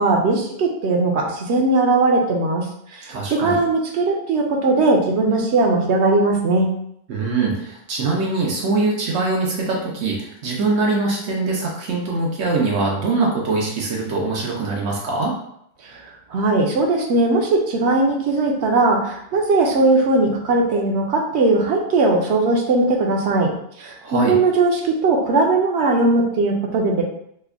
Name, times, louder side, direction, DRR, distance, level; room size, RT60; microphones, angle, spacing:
voice 1, 0.0-2.6 2.9-6.7 15.8-23.5 23.8-27.0, right 2 dB, 70° right, 1 dB, 0.8 m, -19 dB
voice 2, 3.1-3.6 7.1-15.3 24.0-24.4, right 3 dB, 90° right, -2 dB, 1.1 m, -22 dB
3.3 x 2.1 x 3.5 m, 0.72 s
omnidirectional pair, 1.2 m